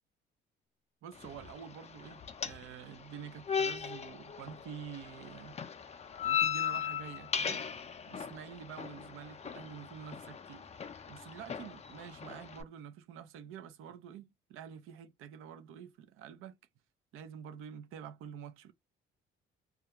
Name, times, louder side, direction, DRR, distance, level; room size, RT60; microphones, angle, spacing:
voice 1, 1.0-5.6 6.2-7.7 8.1-10.7 11.1-16.6 17.1-18.7, right 8 dB, 80° right, 0.5 m, -48 dB
sound 1, 1.1-12.6, left 8 dB, 30° left, 0.4 m, -38 dB
2.3 x 2.2 x 2.8 m
cardioid pair, 85°, 21 cm